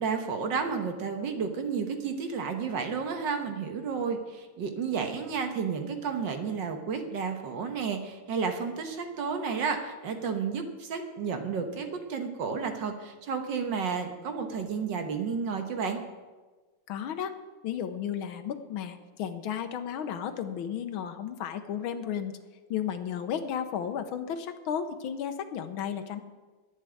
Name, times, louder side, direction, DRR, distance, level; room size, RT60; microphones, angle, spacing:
voice 1, 0.0-16.0, right 5 dB, 60° right, 6 dB, 1.7 m, -32 dB
voice 2, 16.9-17.4 17.6-22.4 22.7-26.2, left 8 dB, 75° left, 9 dB, 1.6 m, -33 dB
11.0 x 7.7 x 9.7 m, 1.3 s
omnidirectional pair, 2.3 m